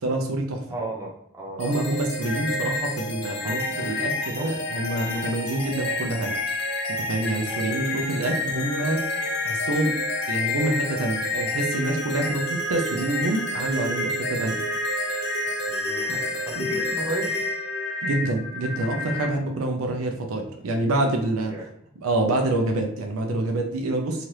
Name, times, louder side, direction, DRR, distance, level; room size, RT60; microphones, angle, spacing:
voice 1, 0.0-0.6 1.6-6.3 7.1-9.0 9.4-9.9 10.3-14.6 16.1-16.2 16.6-16.7 18.0-21.5 22.0-24.3, right 2 dB, 70° right, 3 dB, 0.5 m, -26 dB
voice 2, 0.7-1.8 3.0-4.5 7.4-7.6 15.7-17.3 21.5-21.6, right 2 dB, 15° right, -4 dB, 0.8 m, -36 dB
sound 1, 1.6-19.3, left 2 dB, 50° left, 0.6 m, -29 dB
2.8 x 2.4 x 3.1 m, 0.76 s
head